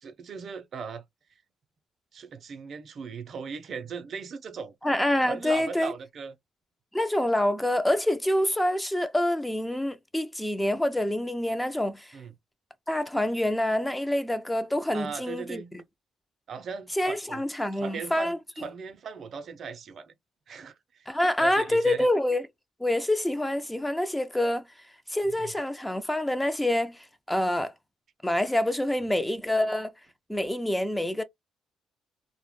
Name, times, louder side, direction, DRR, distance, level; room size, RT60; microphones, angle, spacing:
voice 1, 0.0-1.0 1.3-1.4 2.1-4.7 5.2-6.3 12.1-12.3 14.9-15.7 16.5-17.4 17.7-20.1 20.5-22.1 25.3-25.5, right 6 dB, 55° right, 0.4 m, -38 dB
voice 2, 4.8-5.9 6.9-12.2 12.9-15.6 17.0-18.7 21.1-22.4 22.8-24.7 25.1-27.7 28.2-29.9 30.3-31.2, left 1 dB, 10° left, 0.4 m, -26 dB
2.0 x 2.0 x 3.0 m
cardioid pair, 90°, 0 cm